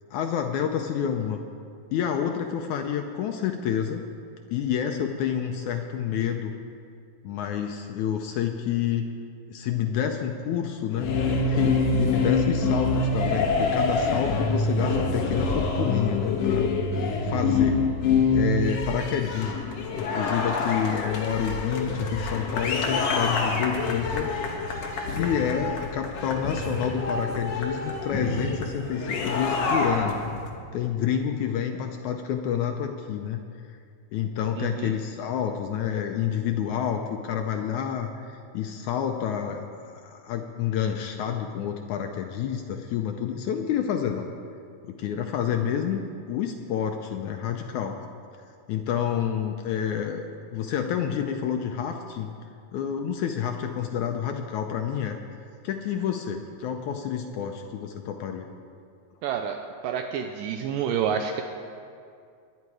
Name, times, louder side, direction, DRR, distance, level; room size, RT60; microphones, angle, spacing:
voice 1, 0.1-1.4 1.9-4.0 4.5-6.5 7.2-9.1 9.5-11.1 11.5-16.7 17.2-17.8 18.3-19.6 20.0-24.3 25.1-30.2 30.7-33.4 34.1-44.3 44.9-48.0 48.7-52.3 52.7-55.2 55.6-58.5, left 8 dB, 80° left, 4 dB, 1.8 m, -28 dB
sound 1, 10.9-30.5, left 3 dB, 55° left, 2.1 m, -26 dB
voice 2, 34.6-34.9 59.2-59.6 59.8-61.4, right 8 dB, 80° right, 4 dB, 2.2 m, -28 dB
22.0 x 9.8 x 4.8 m, 2.3 s
omnidirectional pair, 4.1 m